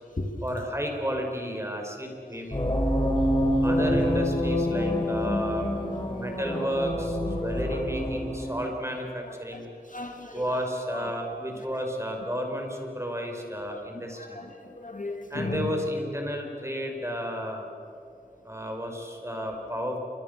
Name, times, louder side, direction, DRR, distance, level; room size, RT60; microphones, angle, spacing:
voice 1, 0.4-2.7 3.6-5.7 6.1-9.7 10.3-14.4 15.3-17.7 18.5-20.0, equal, 15° right, 2 dB, 5.4 m, -32 dB
sound 1, 2.5-8.7, equal, 30° left, 5.7 m, -26 dB
voice 2, 3.8-4.1 6.3-6.4 7.2-7.8 9.2-10.6 10.9-11.1 11.7-11.8 13.9-15.7, left 2 dB, 50° left, 4 dB, 2.6 m, -37 dB
28.0 x 25.0 x 6.9 m, 2.6 s
wide cardioid pair, 50°, 17 cm